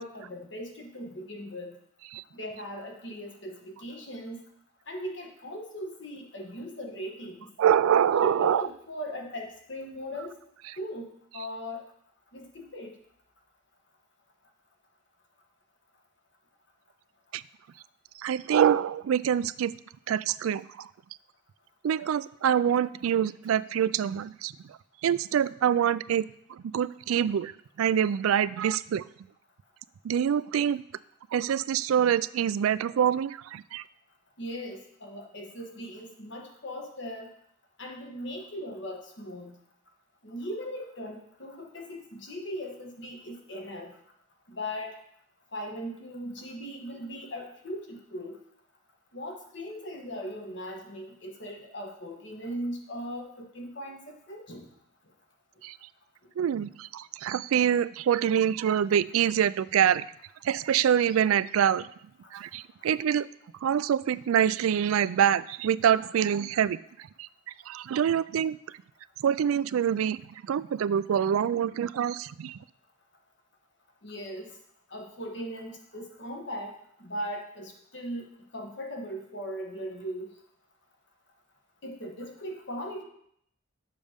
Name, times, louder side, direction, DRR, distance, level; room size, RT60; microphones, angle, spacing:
voice 1, 0.0-1.7 2.3-4.4 4.9-7.5 8.2-10.3 10.8-11.1 11.3-11.8 12.3-13.0 34.4-37.3 37.8-39.5 40.2-43.9 44.5-45.0 45.5-48.4 49.1-54.0 54.3-54.6 74.0-74.5 74.9-76.7 77.0-78.2 78.5-80.3 81.8-83.0, equal, 60° left, 2 dB, 1.4 m, -38 dB
voice 2, 7.6-8.6 17.3-17.4 18.2-19.7 20.1-20.9 21.8-24.5 25.0-26.3 26.7-27.5 27.8-29.0 30.0-30.8 31.3-33.8 55.6-55.8 56.4-60.1 60.4-61.9 62.3-63.3 63.6-66.8 67.2-67.3 67.7-68.6 69.2-70.2 70.5-72.6, right 9 dB, 90° right, 17 dB, 0.3 m, -25 dB
7.2 x 6.4 x 5.1 m, 0.70 s
head